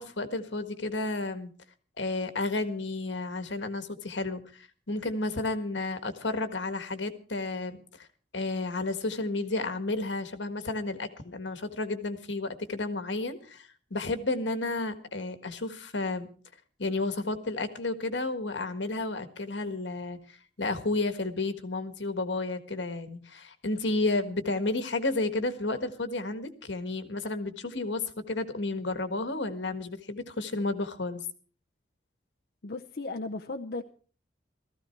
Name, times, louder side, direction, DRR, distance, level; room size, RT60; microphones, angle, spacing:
voice 1, 0.0-1.5 2.0-7.8 8.3-16.3 16.8-20.2 20.6-31.2, left 2 dB, 80° left, 1.6 m, -32 dB
voice 2, 32.6-33.8, left 3 dB, 60° left, 0.7 m, -35 dB
16.0 x 14.5 x 4.5 m
head